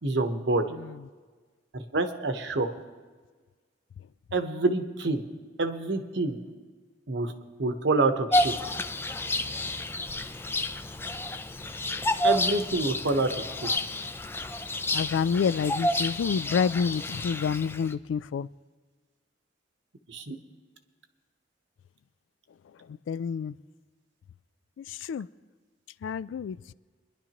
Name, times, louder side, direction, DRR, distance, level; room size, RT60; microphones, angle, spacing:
voice 1, 0.0-0.8 1.7-2.7 4.3-5.2 5.6-6.4 7.1-7.3 7.6-8.5 12.2-13.3 20.1-20.4, right 2 dB, 65° right, 1.0 m, -27 dB
Bird vocalization bird call bird song, 8.3-17.9, left 1 dB, 15° left, 0.4 m, -30 dB
voice 2, 14.9-18.5 23.1-23.5 24.8-25.3 26.0-26.7, left 6 dB, 85° left, 0.3 m, -28 dB
26.0 x 11.0 x 2.9 m
head